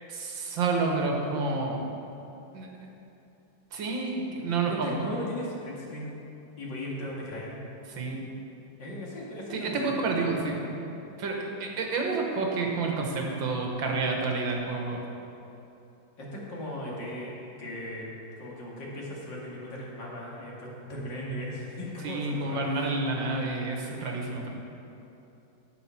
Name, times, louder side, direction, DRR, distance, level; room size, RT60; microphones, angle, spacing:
voice 1, 0.1-1.8 2.5-2.7 3.7-4.9 7.9-8.2 9.5-10.6 11.2-15.0 22.0-24.5, right 3 dB, 85° right, 1 dB, 2.0 m, -29 dB
voice 2, 4.6-6.1 6.6-7.6 8.8-10.4 16.2-18.1 18.4-22.7, left 1 dB, 70° left, -4 dB, 2.7 m, -37 dB
10.5 x 8.0 x 5.9 m, 2.9 s
omnidirectional pair, 2.1 m